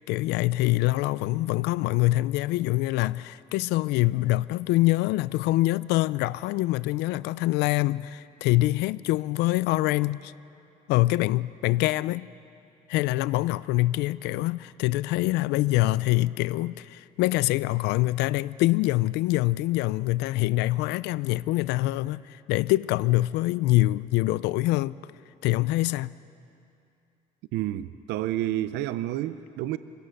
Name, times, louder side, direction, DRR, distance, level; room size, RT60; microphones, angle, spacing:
voice 1, 0.1-10.3 10.9-12.3 12.9-24.9 25.4-26.1, left 18 dB, 90° left, 0.4 m, -25 dB
voice 2, 27.5-29.8, right 14 dB, 85° right, 0.6 m, -29 dB
25.0 x 17.0 x 6.6 m
cardioid pair, 110°, 17 cm